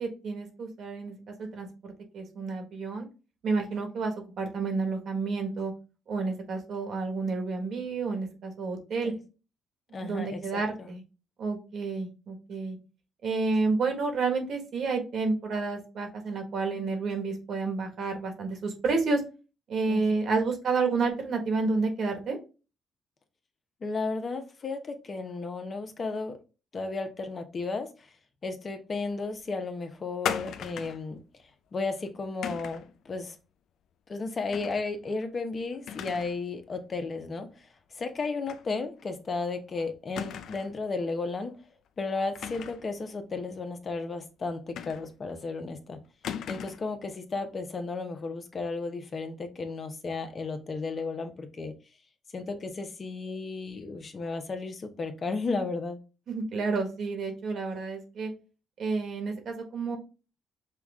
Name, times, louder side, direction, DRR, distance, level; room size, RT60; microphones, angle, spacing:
voice 1, 0.0-3.1 3.4-5.7 6.1-9.1 10.0-11.0 11.4-12.8 13.2-19.2 19.7-22.4 56.3-58.3 58.8-60.0, right 4 dB, 65° right, 1.5 m, -30 dB
voice 2, 9.9-10.9 19.9-20.4 23.8-26.4 26.7-28.1 28.4-31.2 31.7-33.4 34.1-37.7 37.9-41.6 42.0-46.0 46.5-51.7 52.3-56.0, left 3 dB, 40° left, 0.8 m, -34 dB
sound 1, 30.2-31.1 32.4-32.9 34.5-34.8 35.2-35.3 35.9-36.4 36.7-36.8 38.5-38.7 39.0-39.1 40.2-40.8 42.3-42.9 44.8-45.3 46.2-46.9, left 8 dB, 75° left, 0.4 m, -36 dB
5.8 x 2.4 x 3.5 m
cardioid pair, 90°, 0 cm